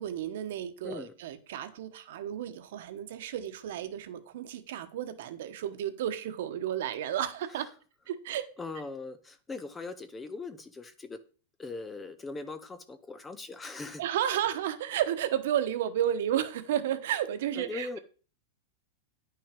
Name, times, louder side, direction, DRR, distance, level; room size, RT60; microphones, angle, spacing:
voice 1, 0.0-7.7 8.1-8.5 14.0-18.0, right 10 dB, 55° right, 1.1 m, -32 dB
voice 2, 8.6-11.2 11.6-14.0 17.5-18.0, left 3 dB, 10° left, 0.5 m, -40 dB
10.0 x 5.8 x 5.2 m
supercardioid pair, 180°, 0 cm